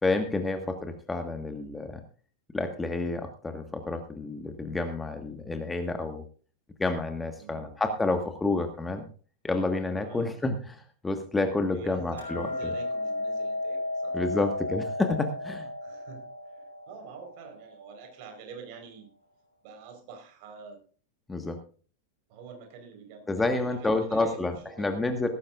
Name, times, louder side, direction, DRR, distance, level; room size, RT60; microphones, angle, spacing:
voice 1, 0.0-2.0 2.5-6.2 6.8-9.1 9.4-10.7 11.0-12.5 14.1-15.7 21.3-21.6 23.3-25.3, left 2 dB, 10° left, 6 dB, 1.5 m, -29 dB
voice 2, 7.4-7.8 10.0-10.4 11.7-14.2 15.8-19.1 19.6-20.8 22.3-24.9, right 5 dB, 45° right, 5 dB, 4.3 m, -46 dB
Hammer, 12.2-18.4, left 2 dB, 75° left, 6.2 m, -34 dB
17.5 x 15.0 x 2.5 m, 0.40 s
figure-of-eight pair, 90°, 0 cm